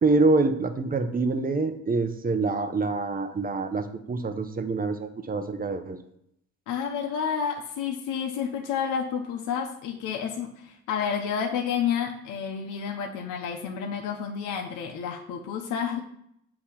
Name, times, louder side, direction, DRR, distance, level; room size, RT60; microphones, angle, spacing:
voice 1, 0.0-6.0, right 3 dB, 30° right, 7 dB, 0.7 m, -26 dB
voice 2, 6.7-16.0, left 7 dB, 90° left, 2 dB, 0.8 m, -30 dB
6.7 x 2.9 x 5.8 m, 0.73 s
cardioid pair, 90°, 30 cm